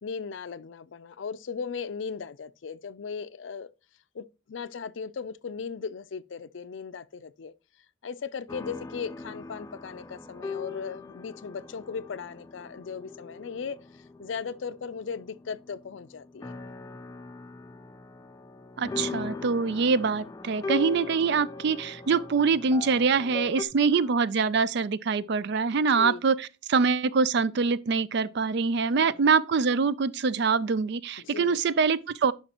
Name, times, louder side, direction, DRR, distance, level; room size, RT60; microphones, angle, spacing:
voice 1, 0.0-3.7 4.1-7.5 8.0-13.8 14.2-16.5 19.9-20.0 23.9-24.1 26.0-26.2 29.0-29.2 31.2-31.6, left 5 dB, 70° left, 0.5 m, -37 dB
sound 1, 8.5-23.6, left 3 dB, 15° left, 0.4 m, -39 dB
voice 2, 18.8-32.3, right 5 dB, 60° right, 0.4 m, -24 dB
11.0 x 5.5 x 2.9 m
head